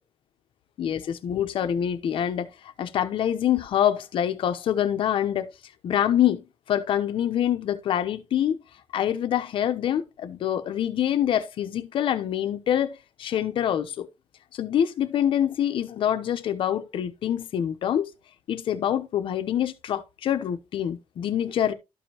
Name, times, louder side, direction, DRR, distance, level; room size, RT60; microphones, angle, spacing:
voice 1, 0.8-2.5 2.8-5.5 5.8-8.6 8.9-14.1 14.5-18.1 18.5-21.7, left 10 dB, 65° left, 0.9 m, -25 dB
12.5 x 5.0 x 2.9 m
cardioid pair, 145°, 10 cm